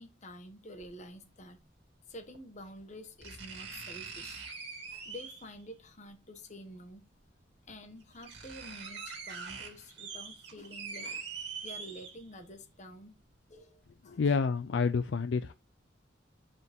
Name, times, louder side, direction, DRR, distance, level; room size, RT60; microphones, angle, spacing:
voice 1, 0.0-1.6 2.1-4.5 4.9-7.1 7.7-11.3 11.6-13.1 13.5-14.4, left 1 dB, 35° left, 1.3 m, -49 dB
sound 1, 0.8-0.9 2.3-2.4 3.2-5.6 6.9-7.0 7.7-7.8 8.0-12.5 12.9-13.0, right 5 dB, 55° right, 2.4 m, -43 dB
voice 2, 14.1-15.5, left 5 dB, 65° left, 0.4 m, -29 dB
9.5 x 5.0 x 3.6 m
head